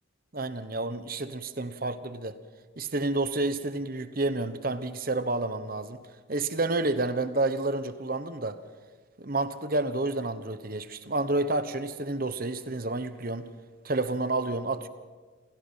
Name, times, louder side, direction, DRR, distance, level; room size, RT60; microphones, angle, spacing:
voice 1, 0.3-2.4 2.8-6.0 6.3-8.6 9.2-13.5 13.8-14.9, right 2 dB, 45° right, 12 dB, 1.1 m, -29 dB
27.5 x 17.0 x 5.8 m, 1.4 s
head